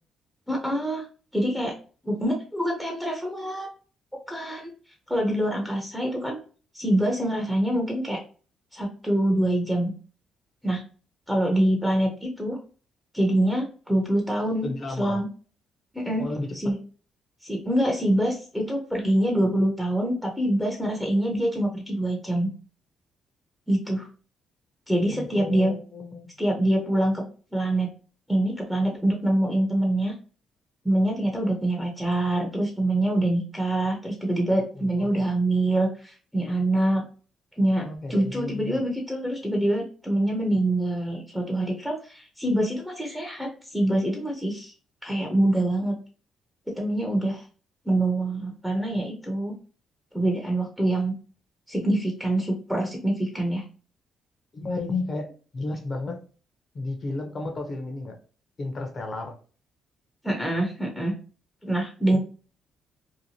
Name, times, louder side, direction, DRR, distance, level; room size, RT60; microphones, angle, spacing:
voice 1, 0.5-1.1 1.3-1.7 2.0-3.7 4.3-4.7 5.1-6.4 6.7-8.2 8.7-9.9 10.6-10.8 11.3-12.6 13.1-14.7 15.0-15.3 15.9-16.3 16.5-16.8 17.4-22.5 23.7-24.1 24.9-25.7 26.4-27.2 27.5-27.9 28.3-30.1 30.8-37.0 37.6-44.7 45.0-45.9 46.7-47.4 47.9-49.6 50.1-51.1 51.7-53.6 60.2-61.2 61.6-62.2, right 1 dB, ahead, 0.6 m, -25 dB
voice 2, 14.6-15.2 16.2-16.7 25.1-26.4 34.7-35.1 37.8-38.8 54.5-56.2 56.7-58.1 58.6-59.4, left 2 dB, 40° left, 0.7 m, -33 dB
2.8 x 2.1 x 2.7 m
cardioid pair, 90°, 0 cm